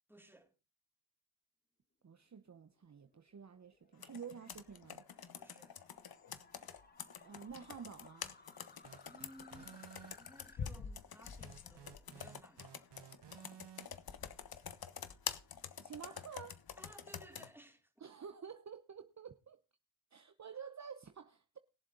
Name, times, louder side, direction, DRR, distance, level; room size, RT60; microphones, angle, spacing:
voice 1, 0.1-0.5 5.4-5.8 9.0-9.8 10.2-12.8 16.8-17.9, right 1 dB, 5° right, 3.6 m, -59 dB
voice 2, 2.0-5.0 7.2-8.3 15.8-16.6 18.0-19.6 20.1-21.6, right 7 dB, 40° right, 1.0 m, -50 dB
sound 1, 2.5-10.6, left 3 dB, 25° left, 1.4 m, -64 dB
Computer keyboard, 4.0-17.5, left 7 dB, 60° left, 1.3 m, -47 dB
sound 2, 8.8-10.1 11.4-13.9, right 9 dB, 75° right, 1.3 m, -55 dB
21.0 x 7.5 x 4.0 m
cardioid pair, 65°, 42 cm